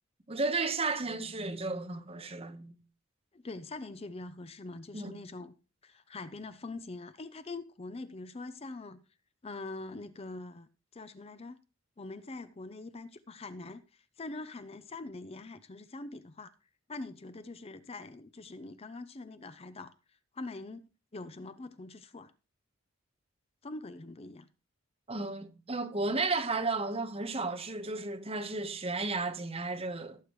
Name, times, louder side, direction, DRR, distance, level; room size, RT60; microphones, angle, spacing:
voice 1, 0.3-2.7 4.9-5.2 25.1-30.2, right 3 dB, 30° right, 1.1 m, -33 dB
voice 2, 3.3-5.6 5.8-9.0 9.4-11.6 12.0-16.5 16.9-22.3 23.6-24.5, left 2 dB, 30° left, 0.5 m, -44 dB
17.0 x 8.4 x 3.1 m
head